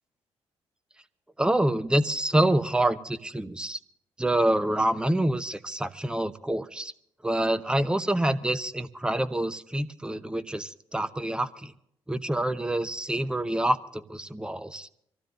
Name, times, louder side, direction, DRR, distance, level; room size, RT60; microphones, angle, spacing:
voice 1, 1.4-3.8 4.2-6.9 7.2-11.7 12.1-14.9, right 1 dB, 5° right, 12 dB, 0.9 m, -26 dB
25.0 x 16.0 x 2.7 m, 0.71 s
figure-of-eight pair, 40°, 14 cm